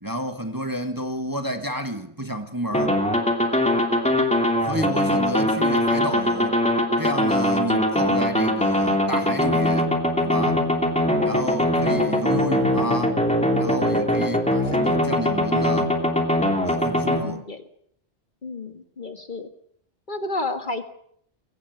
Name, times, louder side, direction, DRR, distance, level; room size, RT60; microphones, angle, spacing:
voice 1, 0.0-3.0 4.6-6.6 7.0-9.9 10.2-10.6 11.2-13.2 13.5-15.9 16.6-17.5, equal, 15° right, 1.6 m, -30 dB
sound 1, 2.7-17.2, left 1 dB, 5° left, 3.0 m, -22 dB
voice 2, 17.2-17.6 18.4-19.5 20.1-20.9, left 2 dB, 40° left, 1.8 m, -31 dB
21.5 x 18.0 x 7.9 m
omnidirectional pair, 1.3 m